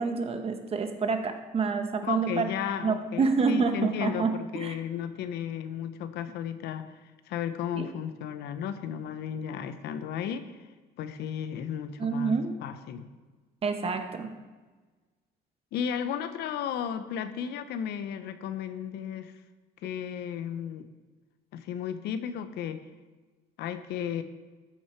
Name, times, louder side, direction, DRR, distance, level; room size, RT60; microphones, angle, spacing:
voice 1, 0.0-2.5 2.8-4.8 7.7-7.9 12.0-12.5 13.6-14.4, right 5 dB, 35° right, 6 dB, 1.1 m, -28 dB
voice 2, 2.0-6.9 7.3-10.6 11.0-13.1 15.7-19.3 19.8-20.9 21.5-22.8 23.6-24.2, left 8 dB, 80° left, 10 dB, 0.8 m, -34 dB
13.5 x 6.2 x 4.5 m, 1.3 s
cardioid pair, 110°, 17 cm